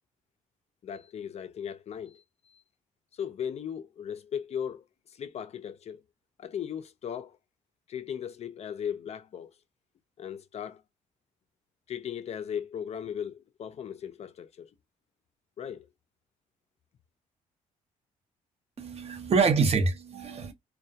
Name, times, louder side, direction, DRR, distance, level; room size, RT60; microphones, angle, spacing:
voice 1, 0.8-2.6 3.1-6.0 6.4-7.4 7.9-9.5 10.2-10.8 11.9-14.7 15.6-15.9, left 8 dB, 50° left, 0.4 m, -37 dB
voice 2, 18.8-20.5, right 4 dB, 45° right, 0.7 m, -25 dB
2.2 x 2.2 x 2.6 m
cardioid pair, 75°, 14 cm